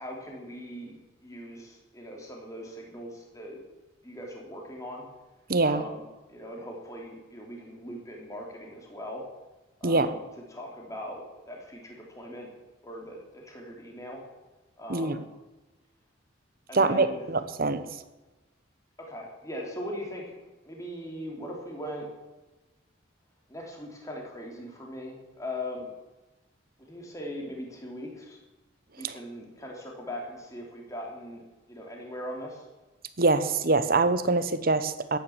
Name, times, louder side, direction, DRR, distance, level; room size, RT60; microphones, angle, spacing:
voice 1, 0.0-3.6 4.0-5.1 5.6-6.0 6.3-9.2 9.8-11.2 11.5-12.5 12.8-14.2 14.8-15.3 16.7-17.3 19.0-20.3 20.7-22.1 23.5-25.9 26.8-28.4 29.0-31.4 31.7-32.6, equal, 15° left, -1 dB, 3.5 m, -40 dB
voice 2, 5.5-5.8 9.8-10.1 14.9-15.2 16.7-17.8 29.0-29.1 33.2-35.2, right 3 dB, 50° right, 12 dB, 1.0 m, -24 dB
13.0 x 10.5 x 7.4 m, 1.1 s
head